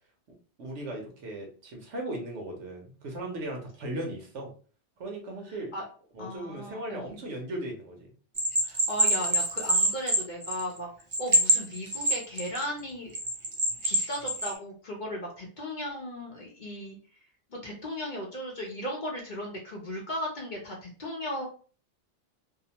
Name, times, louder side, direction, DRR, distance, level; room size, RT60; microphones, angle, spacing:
voice 1, 0.6-4.5 5.0-5.7 6.1-8.1, right 1 dB, 70° right, 1 dB, 1.1 m, -37 dB
voice 2, 6.2-7.1 8.6-10.9 11.2-13.1 13.8-17.0 17.5-21.5, equal, 45° left, -2 dB, 0.8 m, -36 dB
Bell, 8.4-10.8 11.1-12.6 13.1-14.5, right 1 dB, 35° right, 0.5 m, -25 dB
2.8 x 2.0 x 2.8 m, 0.40 s
omnidirectional pair, 1.2 m